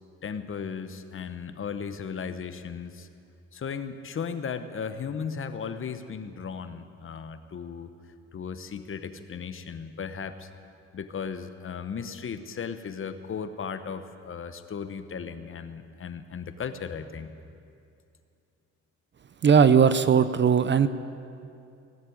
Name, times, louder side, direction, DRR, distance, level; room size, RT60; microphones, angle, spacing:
voice 1, 0.2-3.1 3.5-7.9 8.3-10.5 10.9-17.3, left 6 dB, 45° left, 10 dB, 1.0 m, -36 dB
voice 2, 19.4-20.9, right 7 dB, 40° right, 13 dB, 0.6 m, -18 dB
17.5 x 7.5 x 9.8 m, 2.5 s
cardioid pair, 90°, 30 cm